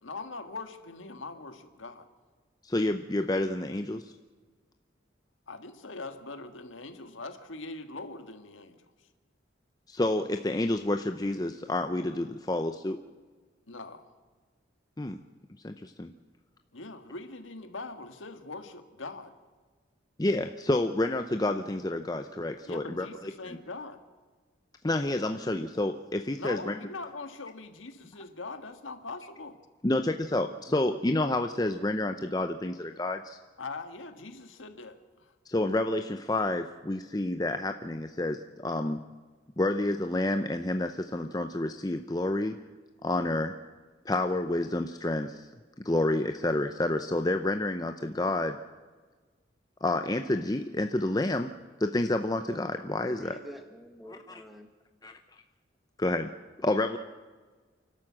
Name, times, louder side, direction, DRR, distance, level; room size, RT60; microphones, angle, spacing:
voice 1, 0.0-2.1 5.5-8.8 13.7-14.1 16.7-19.3 22.7-24.0 26.4-29.6 33.6-35.3, left 3 dB, 90° left, 7 dB, 1.7 m, -42 dB
voice 2, 2.6-4.1 9.9-13.0 15.0-15.2 15.6-16.1 20.2-23.3 24.8-26.8 29.8-33.4 35.5-39.0 39.6-42.6 43.0-43.6 44.1-45.5 45.8-48.6 49.8-51.5 51.8-53.4 54.1-54.4 55.0-55.1 56.0-56.3 56.6-57.0, left 2 dB, 20° left, 7 dB, 0.6 m, -29 dB
voice 3, 52.9-54.7, equal, ahead, 5 dB, 1.6 m, -47 dB
28.5 x 12.5 x 7.4 m, 1.4 s
head